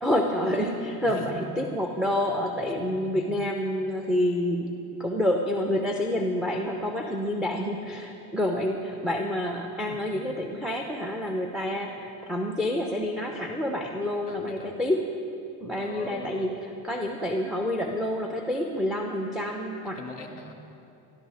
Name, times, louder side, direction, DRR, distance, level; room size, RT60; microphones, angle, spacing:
voice 1, 0.0-4.7 5.0-15.0 15.6-20.0, left 1 dB, ahead, 2 dB, 1.0 m, -28 dB
voice 2, 14.3-14.7 15.8-16.6 19.9-20.5, left 3 dB, 20° left, 2 dB, 2.5 m, -41 dB
17.0 x 13.0 x 5.1 m, 2.7 s
supercardioid pair, 100°, 45 cm